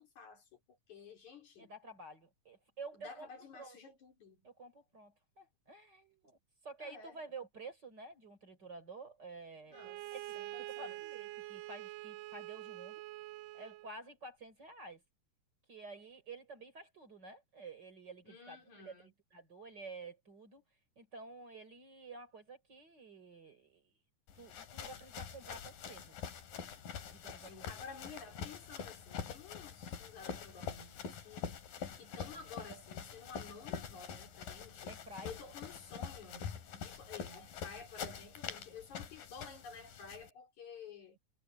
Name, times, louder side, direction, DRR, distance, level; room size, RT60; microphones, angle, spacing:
voice 1, 0.0-1.7 2.9-4.5 6.8-7.2 9.7-10.1 10.3-11.0 18.2-19.1 27.5-31.5 31.9-41.2, left 5 dB, 60° left, 5.2 m, -52 dB
voice 2, 1.6-3.3 3.5-4.0 4.4-6.4 6.6-10.4 10.7-13.0 13.5-15.0 15.7-18.6 18.8-18.9 19.3-20.6 21.0-23.9 24.3-26.1 27.1-27.7 32.3-32.4 34.9-35.3, right 3 dB, 30° right, 4.4 m, -51 dB
Bowed string instrument, 9.7-13.9, right 17 dB, 85° right, 2.2 m, -46 dB
sound 1, 24.3-40.3, left 7 dB, 85° left, 4.2 m, -45 dB
omnidirectional pair, 3.9 m